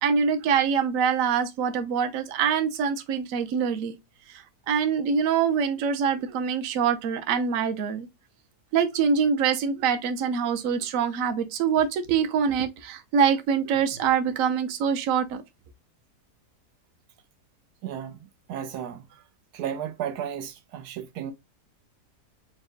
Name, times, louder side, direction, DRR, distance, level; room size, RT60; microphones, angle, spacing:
voice 1, 0.0-3.9 4.3-8.1 8.7-15.4, right 7 dB, 65° right, 1.0 m, -24 dB
voice 2, 17.8-18.2 18.5-19.2 19.5-21.3, right 9 dB, 80° right, 1.2 m, -34 dB
4.8 x 2.2 x 3.9 m
omnidirectional pair, 1.7 m